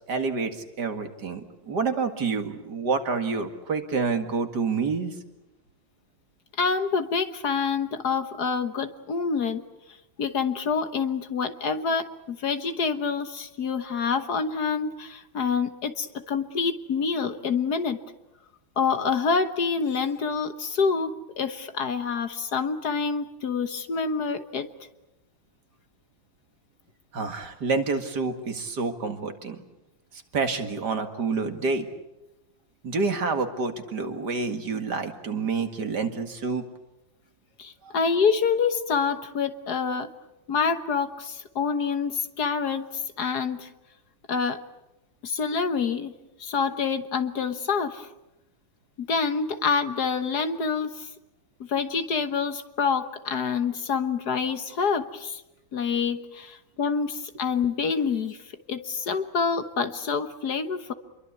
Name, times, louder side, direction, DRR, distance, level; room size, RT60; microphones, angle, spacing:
voice 1, 0.1-5.1 27.1-29.6 30.1-31.9 32.8-36.6 37.8-37.9, right 4 dB, 55° right, 6 dB, 2.5 m, -28 dB
voice 2, 6.6-9.6 10.2-18.0 18.8-24.7 37.6-40.1 40.5-43.7 44.3-44.6 45.2-48.1 49.0-51.1 51.7-55.4 55.7-58.4 58.7-60.9, left 5 dB, 55° left, 9 dB, 1.6 m, -27 dB
28.0 x 23.0 x 8.3 m, 0.95 s
omnidirectional pair, 2.1 m